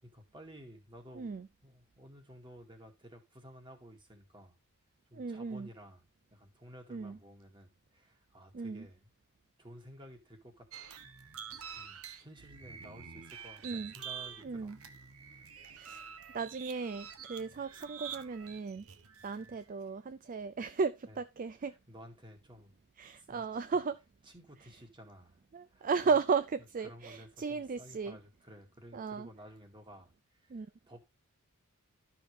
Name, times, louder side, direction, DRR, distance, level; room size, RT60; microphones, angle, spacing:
voice 1, 0.0-1.3 1.6-4.6 5.1-6.1 6.3-9.1 9.6-10.7 11.8-14.7 15.2-15.6 21.1-21.2 21.7-22.7 23.2-23.5 24.3-25.4 25.7-26.2 26.8-31.0, equal, 20° right, 2.2 m, -54 dB
voice 2, 1.1-1.5 5.1-5.7 6.9-7.2 8.5-8.9 13.6-13.9 14.4-14.8 15.7-16.0 16.3-18.8 19.2-21.7 23.0-24.0 25.5-28.2 28.9-29.3 30.5-30.7, right 5 dB, 40° right, 0.4 m, -35 dB
sound 1, 10.7-19.6, right 7 dB, 70° right, 1.1 m, -47 dB
13.0 x 5.9 x 3.3 m
head